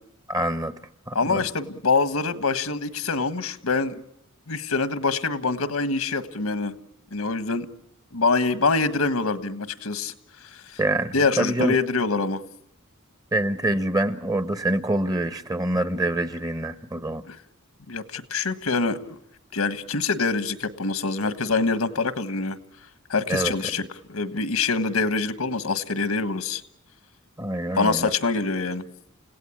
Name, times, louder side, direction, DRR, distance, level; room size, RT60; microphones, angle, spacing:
voice 1, 0.3-0.7 1.1-1.4 10.8-11.8 13.3-17.2 23.3-23.5 27.4-28.1, right 1 dB, 15° right, 12 dB, 1.0 m, -25 dB
voice 2, 1.1-4.0 4.5-6.7 7.1-7.7 8.1-10.1 10.4-10.8 11.1-12.4 17.3-17.4 17.9-19.2 19.5-22.6 23.1-26.6 27.7-28.8, left 4 dB, 80° left, 12 dB, 1.5 m, -25 dB
30.0 x 17.0 x 8.5 m, 0.77 s
head